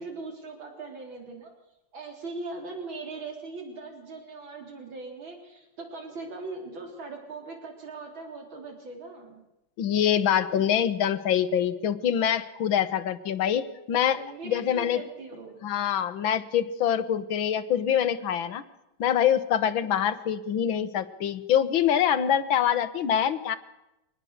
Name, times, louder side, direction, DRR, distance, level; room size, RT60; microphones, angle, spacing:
voice 1, 0.0-1.5 1.9-9.4 10.5-10.7 14.1-15.6, right 3 dB, 85° right, 2 dB, 4.2 m, -40 dB
voice 2, 9.8-15.0 15.6-18.6 19.0-23.6, left 9 dB, 85° left, 13 dB, 1.9 m, -25 dB
23.5 x 19.0 x 6.5 m, 0.91 s
omnidirectional pair, 2.1 m